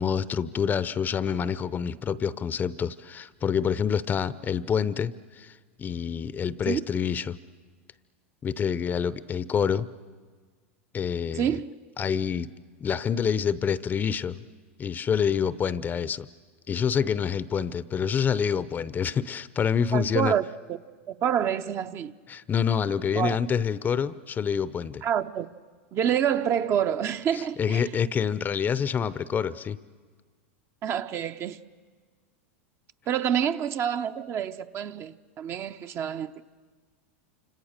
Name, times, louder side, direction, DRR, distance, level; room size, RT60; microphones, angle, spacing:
voice 1, 0.0-7.4 8.4-9.9 10.9-11.5 12.0-12.5 12.8-14.4 14.8-16.3 16.7-20.3 22.3-25.0 27.3-29.8, left 7 dB, 25° left, 0.7 m, -27 dB
voice 2, 11.3-11.7 19.9-20.8 21.1-22.1 23.1-23.4 25.0-25.5 25.9-27.8 30.8-31.6 33.1-36.4, right 9 dB, 35° right, 0.8 m, -27 dB
28.5 x 26.5 x 6.7 m
hypercardioid pair, 115°, 7 cm